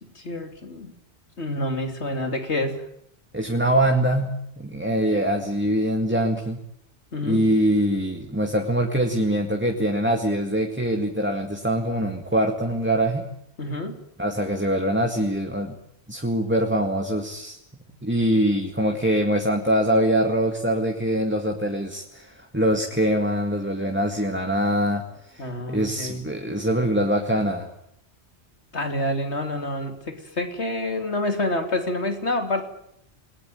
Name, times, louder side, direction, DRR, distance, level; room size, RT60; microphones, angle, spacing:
voice 1, 0.0-0.9 1.4-2.8 7.1-7.4 13.6-14.0 25.4-26.2 28.7-32.7, left 1 dB, 80° left, 5 dB, 3.5 m, -28 dB
voice 2, 3.3-6.6 7.2-13.3 14.2-15.8 16.1-27.7, right 1 dB, 10° right, 3 dB, 2.0 m, -23 dB
29.0 x 20.0 x 9.3 m, 0.75 s
omnidirectional pair, 1.1 m